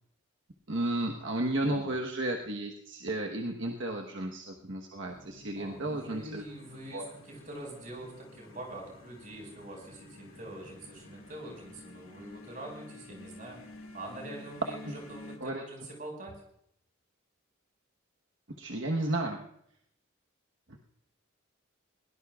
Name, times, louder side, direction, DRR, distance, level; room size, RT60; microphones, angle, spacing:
voice 1, 0.7-6.4 6.9-7.1 15.4-15.6 18.6-19.4 20.7-20.8, right 1 dB, 65° right, 1 dB, 1.2 m, -33 dB
voice 2, 1.6-1.9 5.6-13.6 13.9-16.4, right 1 dB, 40° right, 1 dB, 5.4 m, -44 dB
sound 1, 5.1-15.4, left 2 dB, 90° left, 2.4 m, -51 dB
22.0 x 18.0 x 2.4 m, 0.73 s
head